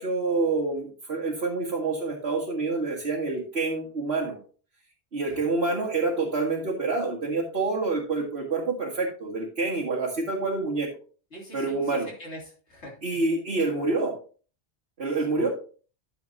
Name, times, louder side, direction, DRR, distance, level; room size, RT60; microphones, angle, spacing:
voice 1, 0.0-4.4 5.1-10.9 11.5-12.1 13.0-14.2 15.0-15.5, right 3 dB, 65° right, -3 dB, 2.0 m, -27 dB
voice 2, 11.3-13.3 15.1-15.5, right 1 dB, 80° left, -1 dB, 3.2 m, -43 dB
12.0 x 7.1 x 2.7 m, 0.39 s
omnidirectional pair, 1.1 m